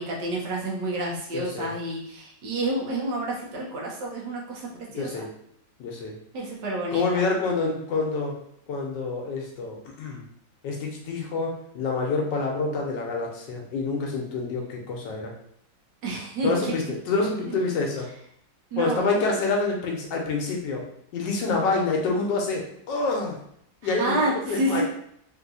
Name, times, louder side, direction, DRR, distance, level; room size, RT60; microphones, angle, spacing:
voice 1, 0.0-5.2 6.3-7.2 16.0-16.8 17.5-17.6 18.7-19.1 23.8-24.8, right 1 dB, 80° right, -3 dB, 1.5 m, -29 dB
voice 2, 1.3-1.7 5.0-5.3 5.8-6.1 6.9-8.4 8.7-10.2 10.6-15.3 16.4-18.1 18.8-20.9 21.1-23.4 23.8-24.1 24.5-24.8, left 3 dB, 80° left, 0 dB, 1.4 m, -27 dB
3.7 x 2.7 x 2.6 m, 0.70 s
omnidirectional pair, 1.9 m